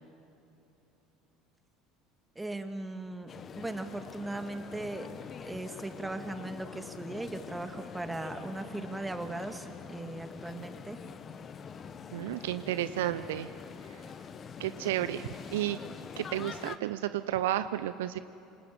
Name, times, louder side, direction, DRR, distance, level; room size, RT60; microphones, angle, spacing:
voice 1, 2.4-5.1 5.5-11.0, right 2 dB, 10° right, 7 dB, 2.1 m, -38 dB
sound 1, 3.3-16.8, left 6 dB, 35° left, 1.3 m, -45 dB
voice 2, 12.1-13.5 14.6-15.8 16.2-18.2, right 13 dB, 70° right, 13 dB, 0.6 m, -32 dB
28.0 x 26.0 x 7.7 m, 2.8 s
figure-of-eight pair, 65°, 0 cm